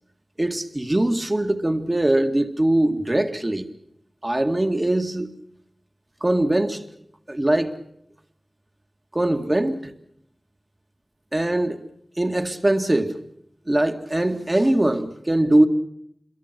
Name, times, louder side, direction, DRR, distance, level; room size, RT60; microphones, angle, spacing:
voice 1, 0.4-3.7 4.2-5.3 6.2-6.9 7.3-7.8 9.1-9.9 11.3-11.8 12.2-13.2 13.7-15.7, right 1 dB, 30° right, 2.1 m, -21 dB
27.0 x 22.5 x 6.1 m
wide cardioid pair, 60°, 0 cm